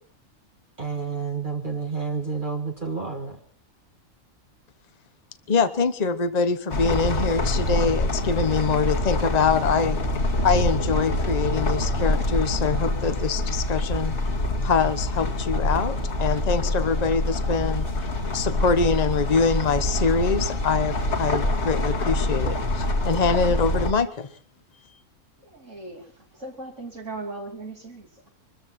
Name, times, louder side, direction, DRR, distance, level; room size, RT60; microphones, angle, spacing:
voice 1, 0.8-3.4, right 5 dB, 35° right, 1 dB, 1.8 m, -29 dB
voice 2, 5.5-10.0 10.4-14.1 14.6-17.9 18.3-24.3, left 5 dB, 30° left, 11 dB, 1.1 m, -24 dB
sound 1, 6.7-23.9, left 1 dB, 50° left, 2.3 m, -25 dB
voice 3, 25.4-26.1 26.3-28.3, right 2 dB, 55° right, 0 dB, 3.4 m, -38 dB
24.0 x 13.5 x 4.3 m, 0.43 s
omnidirectional pair, 1.5 m